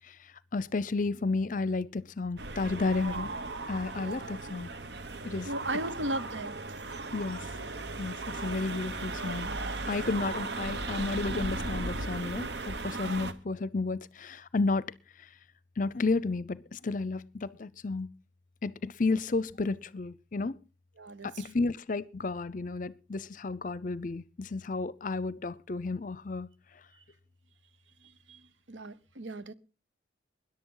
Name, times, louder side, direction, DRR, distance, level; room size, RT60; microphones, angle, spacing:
voice 1, 0.5-3.3 3.7-4.7 5.2-5.5 7.1-7.4 8.0-9.5 9.9-14.9 15.8-18.2 18.6-20.6 21.2-26.5, left 3 dB, 45° left, 0.6 m, -32 dB
sound 1, 2.4-13.3, right 2 dB, 65° right, 1.1 m, -36 dB
voice 2, 5.4-6.6 21.0-21.6 28.3-28.4 28.7-29.5, right 1 dB, 85° right, 1.0 m, -36 dB
20.5 x 11.0 x 3.9 m
head